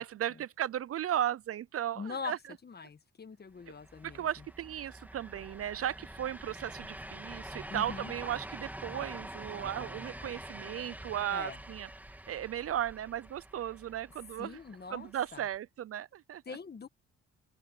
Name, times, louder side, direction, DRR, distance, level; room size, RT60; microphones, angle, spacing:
voice 1, 0.0-2.4 4.0-11.9 12.3-14.6 14.9-16.6, right 11 dB, 50° right, 0.5 m, -36 dB
voice 2, 1.9-2.4 2.6-4.4 7.7-8.1 11.3-11.6 14.4-15.4 16.4-16.9, left 5 dB, 35° left, 1.6 m, -42 dB
sound 1, 3.6-15.6, right 1 dB, 5° right, 2.5 m, -46 dB
open air
cardioid pair, 90°, 30 cm